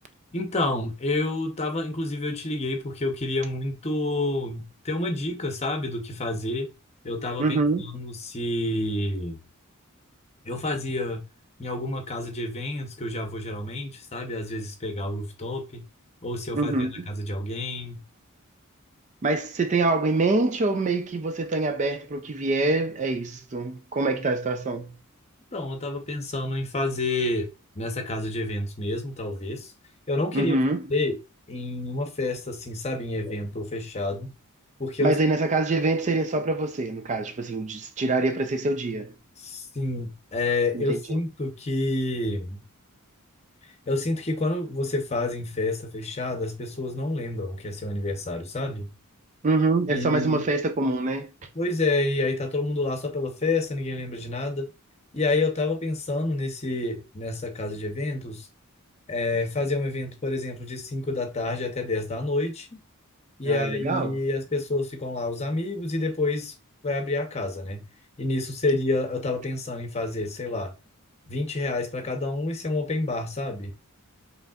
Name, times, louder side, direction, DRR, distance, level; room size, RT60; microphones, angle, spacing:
voice 1, 0.3-6.7 7.0-9.4 10.4-11.2 11.6-15.8 16.2-18.0 25.5-27.5 27.8-29.7 30.1-30.6 30.9-31.2 31.5-34.3 34.8-35.2 35.5-35.6 39.4-42.6 43.9-48.9 49.9-50.4 51.5-54.7 55.1-58.5 59.1-62.8 63.4-66.5 66.8-67.8 68.2-70.7 71.3-73.7, left 2 dB, 30° left, 0.8 m, -28 dB
voice 2, 7.4-7.9 16.5-17.1 19.2-24.9 30.3-30.8 35.0-39.1 40.7-41.2 49.4-51.3 63.4-64.2, right 2 dB, 35° right, 0.4 m, -25 dB
5.2 x 3.2 x 2.3 m
head